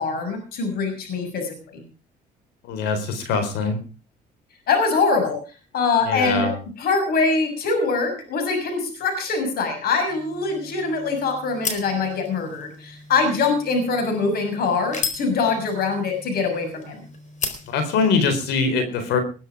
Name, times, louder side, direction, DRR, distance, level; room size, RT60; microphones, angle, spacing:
voice 1, 0.0-1.8 4.7-5.4 5.7-6.5 6.8-17.0, left 4 dB, 65° left, 6 dB, 6.6 m, -23 dB
voice 2, 2.7-3.8 6.1-6.6 17.7-19.2, left 4 dB, 85° left, 9 dB, 4.1 m, -22 dB
sound 1, 10.1-18.4, left 5 dB, 45° left, 4.4 m, -36 dB
20.5 x 10.0 x 4.9 m, 0.36 s
cardioid pair, 110°, 17 cm